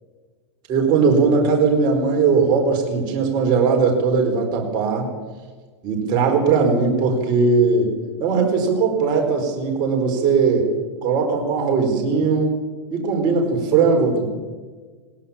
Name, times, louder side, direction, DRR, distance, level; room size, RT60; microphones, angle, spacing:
voice 1, 0.7-5.1 5.8-7.9 8.2-10.7 11.0-12.5 12.9-14.3, right 5 dB, 30° right, 1 dB, 4.5 m, -19 dB
20.5 x 18.0 x 7.2 m, 1.4 s
hypercardioid pair, 145°, 14 cm